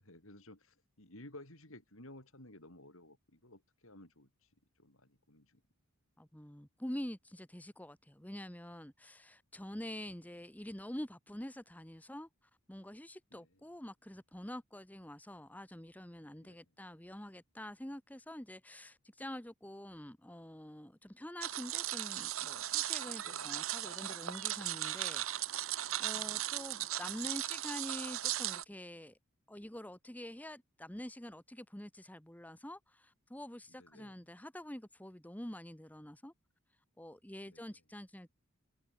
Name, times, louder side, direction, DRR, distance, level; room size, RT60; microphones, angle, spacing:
voice 1, 0.0-4.3 4.8-5.6 9.8-9.9 13.3-13.6 16.4-16.6 23.2-23.5 26.0-26.4 33.8-34.2 37.5-37.7, left 1 dB, 65° left, 7.7 m, -55 dB
voice 2, 6.2-25.2 25.5-29.2 29.5-36.3 37.0-38.3, left 1 dB, 5° left, 1.2 m, -46 dB
sound 1, 21.4-28.6, right 13 dB, 65° right, 1.1 m, -37 dB
head